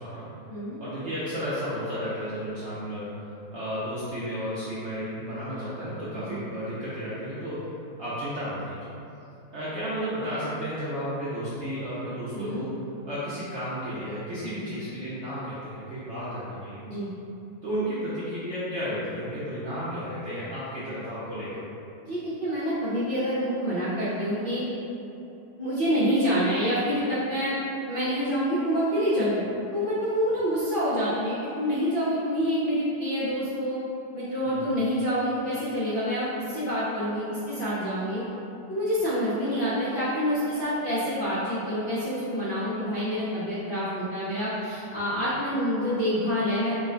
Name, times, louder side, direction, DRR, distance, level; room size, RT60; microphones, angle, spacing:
voice 1, 0.0-0.4 0.8-7.7 8.0-8.8 9.5-12.7 13.0-16.9 17.6-21.6 34.4-34.7, equal, 65° right, -10 dB, 0.6 m, -33 dB
voice 2, 22.0-24.6 25.6-27.6 27.9-33.8 34.1-38.2 38.7-46.7, equal, 90° left, -10 dB, 0.4 m, -27 dB
4.8 x 2.2 x 3.7 m, 2.9 s
omnidirectional pair, 2.1 m